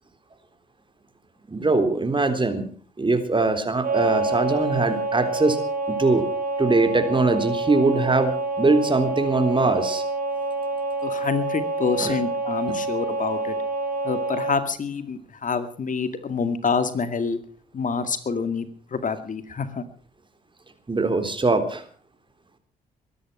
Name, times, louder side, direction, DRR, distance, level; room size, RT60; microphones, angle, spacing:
voice 1, 1.5-2.7 3.0-5.6 5.9-6.2 6.6-8.3 8.6-10.0 12.0-12.2 20.9-21.8, right 3 dB, 25° right, 8 dB, 3.7 m, -22 dB
sound 1, 3.8-14.6, right 3 dB, 55° right, 3.5 m, -27 dB
voice 2, 11.0-13.6 14.0-17.4 17.7-19.8, left 5 dB, 45° left, 10 dB, 2.2 m, -27 dB
22.5 x 11.0 x 5.9 m, 0.44 s
hypercardioid pair, 50°, 18 cm